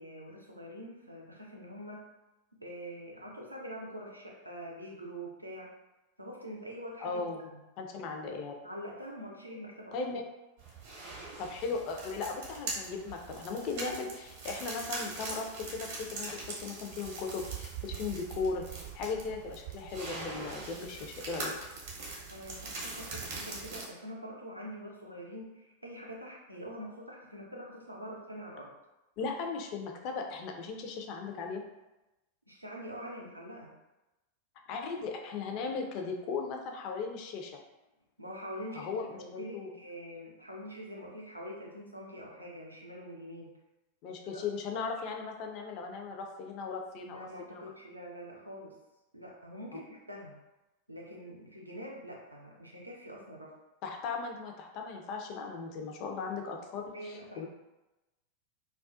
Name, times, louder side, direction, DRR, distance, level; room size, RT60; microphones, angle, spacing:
voice 1, 0.0-2.1 2.6-5.7 6.2-7.2 7.5-7.6 8.6-10.0 22.3-28.7 32.5-33.8 38.2-43.5 44.2-44.4 47.0-48.7 49.1-50.4 50.9-53.5 56.9-57.5, equal, 85° right, -2 dB, 0.5 m, -45 dB
voice 2, 7.0-7.5 7.8-8.5 9.9-10.2 11.4-21.5 29.2-31.6 34.7-37.6 38.8-39.7 44.0-47.6 53.8-57.5, left 4 dB, 40° left, 2 dB, 0.4 m, -37 dB
sound 1, 10.6-23.9, right 3 dB, 50° right, 0.7 m, -42 dB
2.3 x 2.2 x 2.4 m, 1.0 s
figure-of-eight pair, 90°, 0 cm